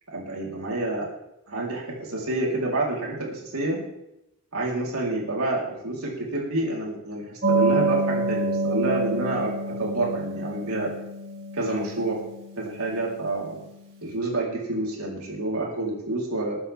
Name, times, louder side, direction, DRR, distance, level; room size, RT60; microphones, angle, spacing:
voice 1, 0.1-1.1 1.5-3.8 4.5-9.5 9.8-10.9 11.5-12.2 12.6-13.6 14.0-16.6, right 2 dB, 80° right, -3 dB, 4.2 m, -28 dB
sound 1, 7.4-13.6, right 2 dB, 50° right, 4.1 m, -28 dB
20.5 x 9.5 x 3.7 m, 0.87 s
head